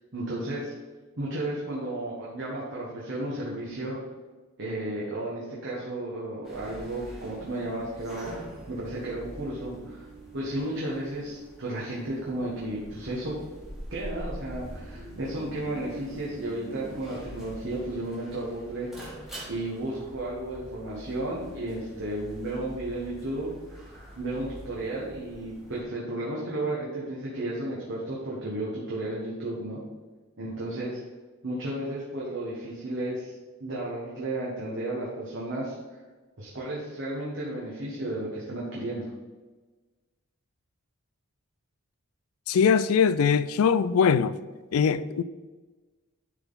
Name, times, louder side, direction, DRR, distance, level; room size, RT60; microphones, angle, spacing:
voice 1, 0.1-0.7 1.2-4.0 4.6-8.4 8.7-10.1 10.3-13.4 13.9-19.2 19.5-23.5 24.2-29.8 30.4-31.0 31.4-33.3 33.6-35.8 36.4-39.1, right 1 dB, 55° right, 1.5 m, -33 dB
sound 1, 6.4-25.8, right 1 dB, ahead, 1.5 m, -44 dB
voice 2, 42.5-44.4 44.7-45.2, left 6 dB, 75° left, 0.3 m, -22 dB
10.5 x 4.0 x 4.1 m
head